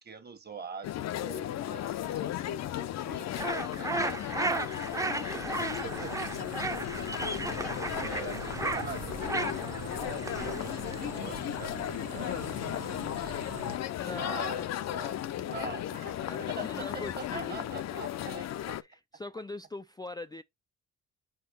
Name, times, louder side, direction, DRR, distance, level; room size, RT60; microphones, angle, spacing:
voice 1, 0.0-5.5 5.8-6.7 7.0-12.5 13.1-13.4 14.0-15.2 15.4-18.8, right 5 dB, 35° right, 1.4 m, -45 dB
sound 1, 0.8-18.8, left 12 dB, 60° left, 0.6 m, -35 dB
sound 2, 3.4-11.4, right 2 dB, 10° right, 0.7 m, -35 dB
sound 3, 5.5-13.8, right 12 dB, 70° right, 0.8 m, -45 dB
voice 2, 13.9-14.6 16.2-17.7 18.8-20.4, left 2 dB, 15° left, 0.3 m, -42 dB
4.6 x 4.3 x 5.3 m
cardioid pair, 90°, 30 cm